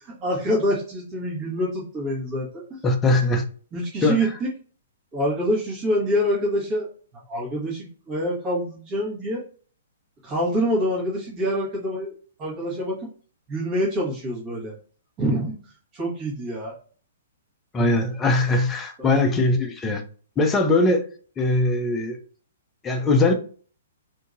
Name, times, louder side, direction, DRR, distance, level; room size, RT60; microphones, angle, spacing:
voice 1, 0.1-2.8 3.7-4.5 5.1-6.9 7.1-9.4 10.2-12.1 12.4-13.1 13.5-14.7 15.2-15.5 15.9-16.7 19.0-19.2, equal, 25° right, 1.5 m, -26 dB
voice 2, 2.8-3.4 4.0-4.2 17.7-20.0 20.4-21.0 21.4-22.2 22.8-23.3, left 2 dB, 15° left, 0.6 m, -20 dB
3.6 x 2.7 x 2.5 m
figure-of-eight pair, 115°, 0 cm